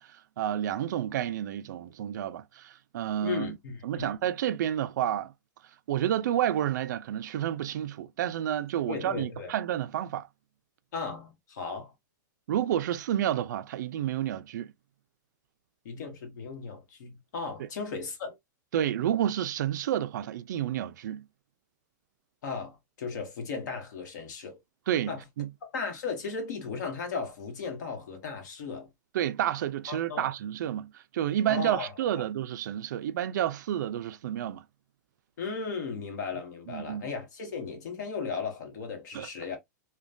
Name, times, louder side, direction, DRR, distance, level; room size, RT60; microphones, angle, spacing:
voice 1, 0.0-3.6 3.8-5.3 5.9-10.3 12.5-14.7 17.6-17.7 18.7-21.3 24.9-25.1 25.4-25.5 29.1-34.6 36.7-37.1 39.1-39.3, right 11 dB, 65° right, 0.4 m, -30 dB
voice 2, 3.2-4.1 8.9-9.5 10.9-11.9 15.8-18.4 22.4-24.6 25.1-25.2 25.7-28.9 29.9-30.3 31.5-31.9 35.4-39.6, left 5 dB, 65° left, 1.2 m, -36 dB
3.0 x 2.2 x 2.4 m
supercardioid pair, 165°, 10 cm